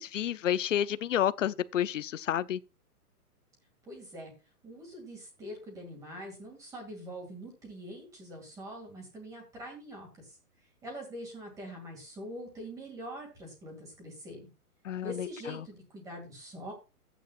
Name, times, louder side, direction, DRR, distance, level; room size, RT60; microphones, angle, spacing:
voice 1, 0.0-2.6 14.8-15.3, left 10 dB, 55° left, 0.7 m, -30 dB
voice 2, 3.8-4.3 4.6-14.5 15.0-16.7, equal, 5° right, 2.3 m, -44 dB
14.0 x 9.2 x 2.4 m
hypercardioid pair, 175°, 45 cm